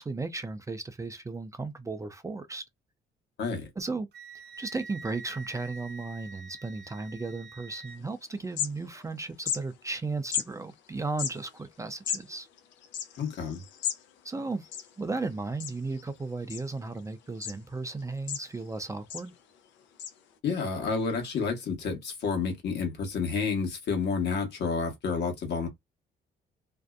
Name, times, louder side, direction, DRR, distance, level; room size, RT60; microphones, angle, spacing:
voice 1, 0.0-2.6 3.8-4.1 4.3-12.5 14.2-14.7 15.0-19.3, right 3 dB, 15° right, 0.4 m, -35 dB
voice 2, 3.4-3.7 13.2-13.6 20.4-25.7, left 5 dB, 65° left, 1.1 m, -30 dB
Wind instrument woodwind instrument, 4.1-8.0, right 4 dB, 65° right, 0.6 m, -46 dB
sound 1, 8.0-8.1 8.3-9.1 9.4-9.6 10.3-10.5 11.1-14.0 14.3-14.4 14.6-15.3 15.6-16.0 16.5-17.0 17.4-17.6 18.0-18.7 19.1-19.3 20.0-20.1, left 9 dB, 90° left, 0.6 m, -34 dB
2.6 x 2.1 x 2.3 m
cardioid pair, 90°, 19 cm